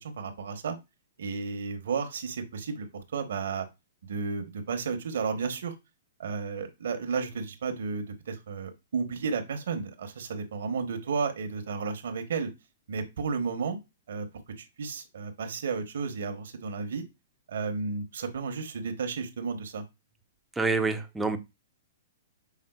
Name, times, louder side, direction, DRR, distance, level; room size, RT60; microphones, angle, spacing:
voice 1, 0.0-0.8 1.2-3.7 4.0-5.7 6.2-12.5 12.9-13.8 14.1-14.3 14.6-17.0 17.5-19.8, right 5 dB, 75° right, 0.9 m, -33 dB
voice 2, 20.5-21.4, right 3 dB, 5° right, 0.5 m, -27 dB
5.8 x 3.5 x 2.2 m
hypercardioid pair, 135°, 0 cm